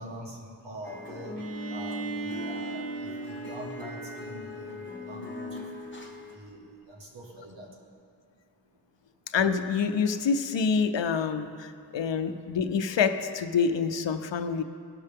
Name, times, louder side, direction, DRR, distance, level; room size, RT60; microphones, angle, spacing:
voice 1, 0.0-1.3 1.7-5.5 6.3-7.7, right 1 dB, 75° right, -2 dB, 1.8 m, -43 dB
sound 1, 0.8-6.4, left 2 dB, 25° left, 1.2 m, -40 dB
Bowed string instrument, 1.4-5.1, right 4 dB, 45° right, 0.9 m, -38 dB
voice 2, 9.3-14.6, left 6 dB, 75° left, 9 dB, 0.6 m, -27 dB
16.5 x 6.5 x 3.6 m, 2.4 s
wide cardioid pair, 50°, 44 cm